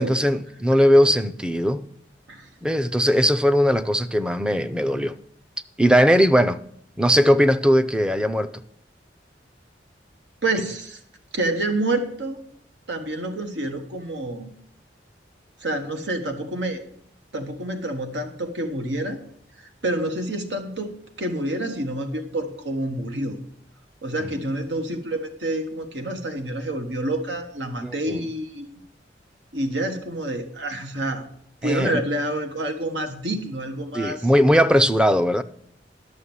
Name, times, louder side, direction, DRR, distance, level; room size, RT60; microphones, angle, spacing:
voice 1, 0.0-1.8 2.6-5.1 5.8-6.6 7.0-8.5 24.2-24.3 27.8-28.2 31.6-32.0 33.9-35.4, equal, 5° right, 11 dB, 0.5 m, -19 dB
voice 2, 10.4-11.0 11.3-12.4 12.9-14.5 15.6-16.8 17.3-19.2 19.6-20.9 21.2-23.4 24.0-28.7 29.5-31.2 31.6-34.3, right 1 dB, 85° right, 6 dB, 1.5 m, -28 dB
11.0 x 6.6 x 7.1 m, 0.65 s
head